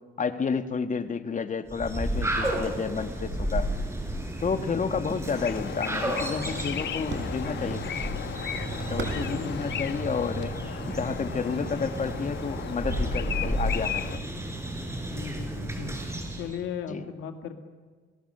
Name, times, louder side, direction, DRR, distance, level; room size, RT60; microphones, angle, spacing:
voice 1, 0.2-3.7 4.4-7.8 8.9-10.5 10.9-14.3 16.9-17.0, left 5 dB, 40° left, 9 dB, 1.5 m, -30 dB
sound 1, 1.7-16.6, right 1 dB, 15° right, 5.0 m, -32 dB
sound 2, 4.9-11.2, right 4 dB, 70° right, 4.7 m, -44 dB
sound 3, 5.3-14.2, left 9 dB, 65° left, 1.0 m, -36 dB
voice 2, 9.3-10.0 15.0-16.1 16.3-17.5, left 7 dB, 85° left, 5 dB, 1.9 m, -37 dB
29.0 x 18.0 x 6.7 m, 1.5 s
cardioid pair, 90°, 20 cm